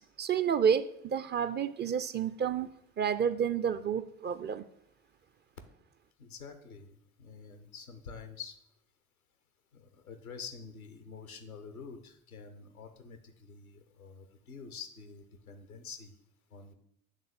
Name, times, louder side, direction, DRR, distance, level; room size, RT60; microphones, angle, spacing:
voice 1, 0.0-4.6, right 7 dB, 25° right, 13 dB, 0.4 m, -30 dB
voice 2, 6.2-8.6 9.7-16.1 16.5-16.7, left 5 dB, 90° left, 8 dB, 0.8 m, -47 dB
8.1 x 3.6 x 6.7 m, 0.74 s
figure-of-eight pair, 55°, 42 cm